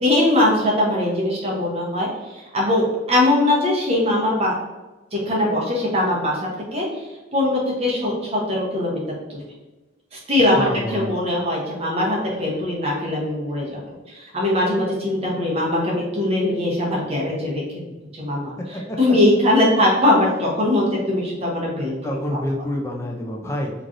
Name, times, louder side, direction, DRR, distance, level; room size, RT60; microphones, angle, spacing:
voice 1, 0.0-4.5 5.1-9.0 9.3-9.4 10.1-13.8 14.1-17.6 18.1-18.5 19.0-21.9 22.3-22.4, left 1 dB, 30° right, -4 dB, 0.8 m, -21 dB
voice 2, 10.5-11.1 18.9-19.0 22.0-23.7, left 1 dB, 15° left, -1 dB, 0.3 m, -27 dB
3.1 x 2.5 x 2.5 m, 1.1 s
head